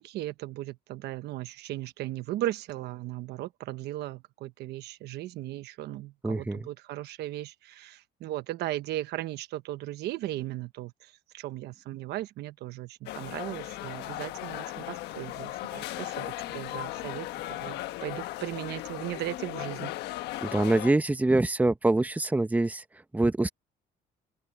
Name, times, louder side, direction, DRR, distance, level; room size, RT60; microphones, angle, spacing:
voice 1, 0.0-19.9, right 15 dB, 80° right, 1.1 m, -37 dB
voice 2, 6.2-6.6 20.4-22.8 23.1-23.5, right 2 dB, 10° right, 0.9 m, -25 dB
sound 1, 13.1-20.9, left 16 dB, 85° left, 1.2 m, -37 dB
open air
cardioid pair, 110°, 17 cm